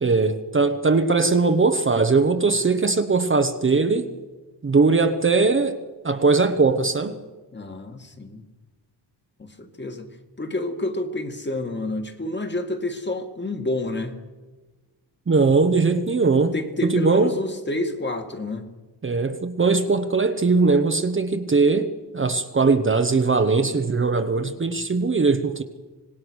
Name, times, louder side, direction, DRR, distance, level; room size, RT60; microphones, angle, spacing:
voice 1, 0.0-4.1 4.6-5.8 6.0-7.2 15.3-16.5 16.8-17.4 19.0-25.6, right 4 dB, 30° right, 1.0 m, -20 dB
voice 2, 7.5-8.4 9.4-10.1 10.4-14.1 16.5-18.7, left 2 dB, 25° left, 2.0 m, -29 dB
25.5 x 19.5 x 6.4 m
wide cardioid pair, 135°, 43 cm